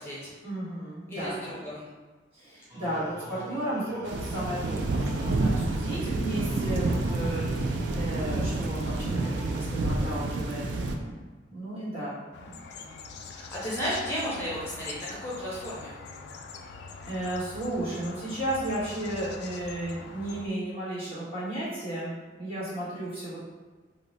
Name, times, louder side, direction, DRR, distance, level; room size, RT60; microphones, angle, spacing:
voice 1, 0.4-1.6 2.3-11.2 11.5-12.6 17.1-23.4, right 1 dB, 35° right, -11 dB, 1.4 m, -34 dB
voice 2, 1.1-1.8 12.7-15.9, equal, 15° left, -8 dB, 0.6 m, -34 dB
sound 1, 2.7-10.1, equal, 15° right, 0.8 m, -46 dB
sound 2, 4.1-11.0, right 2 dB, 75° right, 0.4 m, -29 dB
sound 3, 12.3-20.5, left 4 dB, 65° left, 0.3 m, -43 dB
2.8 x 2.1 x 4.0 m, 1.3 s
head